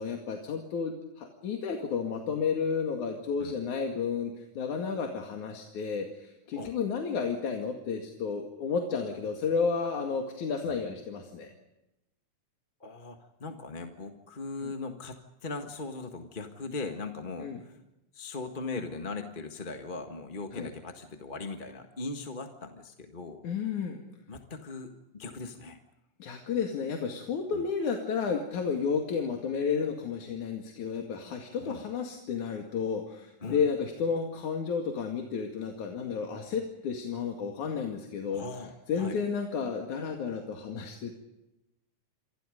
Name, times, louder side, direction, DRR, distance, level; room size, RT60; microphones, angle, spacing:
voice 1, 0.0-11.5 14.6-14.7 17.4-17.6 20.5-20.7 23.4-24.0 26.2-38.5 38.9-41.2, left 6 dB, 90° left, 3 dB, 3.7 m, -32 dB
voice 2, 12.8-17.8 18.1-23.4 24.3-25.8 27.5-27.6 31.6-31.8 33.4-33.7 38.3-39.2, left 3 dB, 25° left, 5 dB, 1.2 m, -39 dB
28.0 x 25.5 x 5.2 m, 0.94 s
omnidirectional pair, 3.3 m